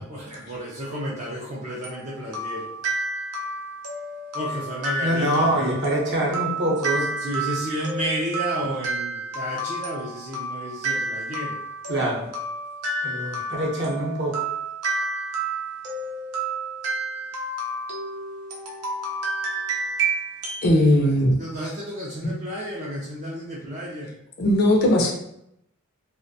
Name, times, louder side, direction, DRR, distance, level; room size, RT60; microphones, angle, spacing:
voice 1, 0.0-2.7 4.4-5.3 5.7-5.8 7.2-11.6 21.4-24.1, right 1 dB, 30° right, 0.3 m, -31 dB
sound 1, 1.8-20.7, right 2 dB, 90° right, 0.6 m, -30 dB
voice 2, 5.0-7.3 11.2-11.3 11.9-12.3 13.0-14.4, right 1 dB, 50° right, 0.7 m, -25 dB
voice 3, 20.6-21.4 22.2-22.3 24.4-25.1, left 1 dB, 45° left, 0.4 m, -18 dB
2.4 x 2.1 x 2.6 m
head